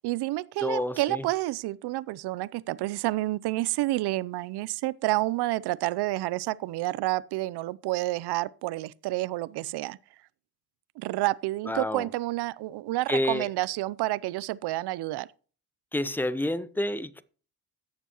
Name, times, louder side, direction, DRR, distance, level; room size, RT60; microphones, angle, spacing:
voice 1, 0.0-10.0 11.0-15.3, right 18 dB, 70° right, 0.6 m, -29 dB
voice 2, 0.6-1.2 11.7-12.1 13.1-13.5 15.9-17.2, left 1 dB, 5° left, 0.8 m, -29 dB
16.0 x 6.8 x 3.0 m
supercardioid pair, 65°, 41 cm